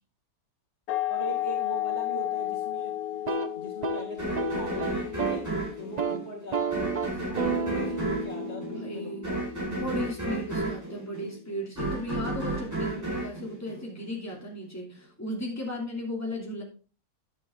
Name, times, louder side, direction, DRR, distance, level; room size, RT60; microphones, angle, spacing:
sound 1, 0.9-6.3, left 13 dB, 85° left, 1.1 m, -33 dB
voice 1, 1.1-3.0 3.6-5.5 5.8-9.4, equal, 50° left, -2 dB, 2.3 m, -41 dB
sound 2, 3.1-5.5 5.8-6.2 6.5-10.4, right 3 dB, 35° right, 0.8 m, -32 dB
sound 3, 4.2-14.4, right 2 dB, 10° right, 4.7 m, -33 dB
voice 2, 8.7-16.6, left 1 dB, 10° left, -1 dB, 2.9 m, -36 dB
11.0 x 7.2 x 3.8 m, 0.35 s
omnidirectional pair, 1.5 m